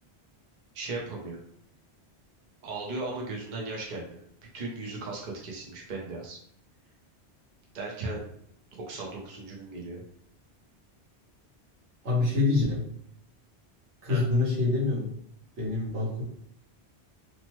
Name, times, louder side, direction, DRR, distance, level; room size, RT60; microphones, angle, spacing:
voice 1, 0.7-1.4 2.6-4.2 4.5-6.4 7.7-8.2 8.7-10.0 14.1-14.2, right 3 dB, 50° right, -2 dB, 0.7 m, -36 dB
voice 2, 12.0-12.8 14.0-15.1 15.6-16.2, left 3 dB, 85° right, -7 dB, 1.5 m, -26 dB
3.0 x 2.1 x 2.9 m, 0.68 s
omnidirectional pair, 1.1 m